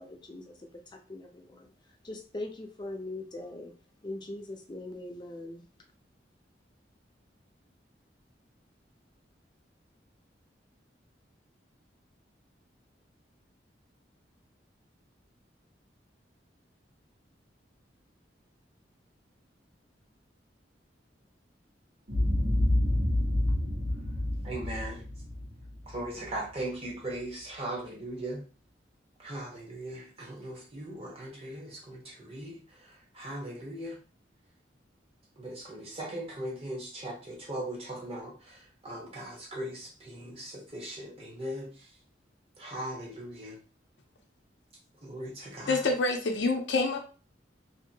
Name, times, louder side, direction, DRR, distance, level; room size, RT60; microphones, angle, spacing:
voice 1, 0.0-1.7 2.0-3.7 4.0-5.7, left 2 dB, 25° left, 3 dB, 0.5 m, -41 dB
Boom, 22.1-26.4, left 1 dB, 60° right, 1.3 m, -28 dB
voice 2, 24.4-25.0 25.9-28.4 29.2-32.6 33.1-34.0 35.4-41.7 42.6-43.6 45.0-45.8, right 1 dB, 35° right, -2 dB, 1.0 m, -39 dB
voice 3, 45.7-47.0, left 3 dB, 80° left, 2 dB, 0.6 m, -27 dB
2.8 x 2.7 x 2.7 m, 0.36 s
head